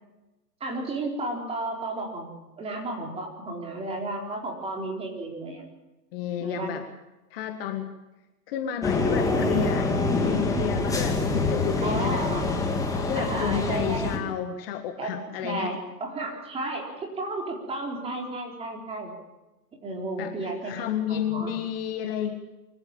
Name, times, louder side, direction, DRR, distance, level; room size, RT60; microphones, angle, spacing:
voice 1, 0.6-2.3 2.6-5.7 6.4-6.7 11.8-12.6 13.1-14.1 15.0-19.1 19.8-21.5, right 2 dB, 10° right, 0 dB, 4.2 m, -33 dB
voice 2, 6.1-6.8 7.3-7.9 8.5-9.9 10.2-12.3 13.1-15.8 20.2-22.3, left 9 dB, 35° left, 6 dB, 1.8 m, -31 dB
sound 1, 8.8-14.2, left 3 dB, 5° left, 2.3 m, -25 dB
24.0 x 14.5 x 8.8 m, 1.0 s
hypercardioid pair, 140°, 50 cm